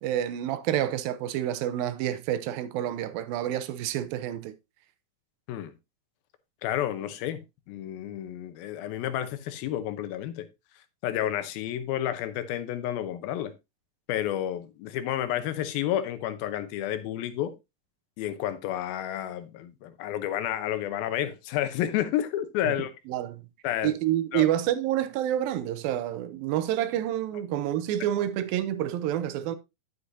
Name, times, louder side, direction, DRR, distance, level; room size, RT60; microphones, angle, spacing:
voice 1, 0.0-4.5 22.7-22.8 23.1-23.4 23.8-29.6, right 12 dB, 85° right, 2.4 m, -28 dB
voice 2, 6.6-7.4 7.7-10.5 11.0-13.5 14.1-17.5 18.2-22.9 23.6-23.9 24.3-24.5, left 11 dB, 85° left, 2.7 m, -30 dB
9.7 x 8.1 x 2.6 m
omnidirectional pair, 4.2 m